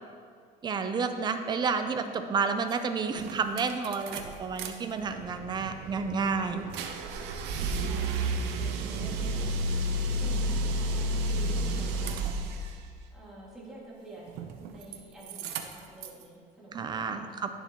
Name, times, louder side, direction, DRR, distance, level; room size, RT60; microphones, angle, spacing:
voice 1, 0.6-2.0 2.3-6.7 16.7-17.5, right 5 dB, 25° right, 8 dB, 0.4 m, -30 dB
sound 1, 2.7-2.8 3.2-4.7 5.0-12.8 14.3-15.0 15.2-16.2, right 1 dB, 85° right, 0.7 m, -32 dB
voice 2, 7.1-9.5 10.1-12.4 13.1-17.5, right 2 dB, 5° right, -8 dB, 2.1 m, -48 dB
11.0 x 7.0 x 2.9 m, 2.1 s
cardioid pair, 155°, 17 cm